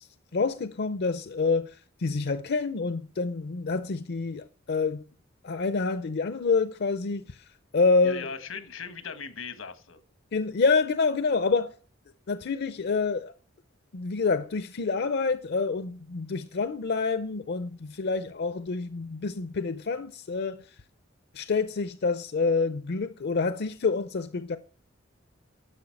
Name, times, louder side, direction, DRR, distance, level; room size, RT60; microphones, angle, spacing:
voice 1, 0.3-5.0 5.4-7.4 7.7-8.3 10.3-11.7 12.3-13.3 13.9-20.6 21.3-24.6, left 4 dB, 55° left, 0.5 m, -27 dB
voice 2, 8.0-10.0, left 6 dB, 85° left, 1.4 m, -39 dB
11.0 x 7.0 x 5.8 m
head